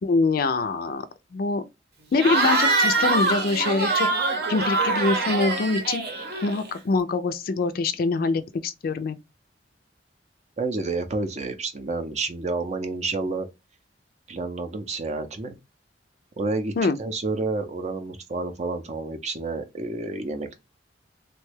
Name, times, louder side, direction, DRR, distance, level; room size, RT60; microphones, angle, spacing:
voice 1, 0.0-1.0 1.3-1.6 2.1-4.1 4.5-6.0 6.4-9.2 16.8-17.0, left 3 dB, 55° left, 0.4 m, -24 dB
Cheering / Crowd, 2.1-6.8, right 3 dB, 65° right, 0.8 m, -24 dB
voice 2, 10.6-13.5 14.3-15.6 16.4-20.6, right 3 dB, 40° right, 0.5 m, -29 dB
3.0 x 2.2 x 3.1 m
head